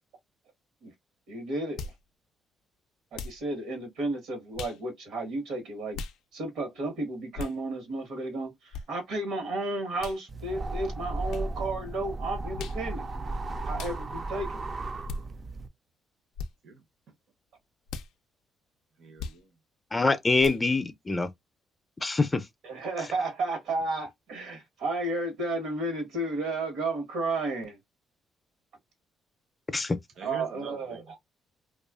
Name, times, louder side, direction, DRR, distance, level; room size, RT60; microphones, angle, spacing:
voice 1, 1.3-1.9 3.1-6.0 6.3-8.5 8.9-13.1 13.6-14.6 22.6-27.8 30.2-31.2, right 2 dB, 90° right, 1.1 m, -32 dB
sound 1, 1.8-2.0 3.1-3.4 4.5-4.8 5.9-6.2 7.3-7.6 8.7-8.9 10.0-10.2 11.3-11.5 12.5-12.8 13.7-14.0 15.1-15.2 16.3-16.5 17.9-18.1 19.2-19.4 20.4-20.6, left 4 dB, 85° left, 0.3 m, -38 dB
sound 2, 10.3-15.7, right 2 dB, 35° right, 0.3 m, -35 dB
voice 2, 19.0-19.5 30.2-31.2, right 5 dB, 70° right, 0.7 m, -45 dB
voice 3, 19.9-21.3 22.0-22.4 29.7-30.0, left 3 dB, 25° left, 0.4 m, -25 dB
2.5 x 2.3 x 2.3 m
cardioid pair, 90°, 0 cm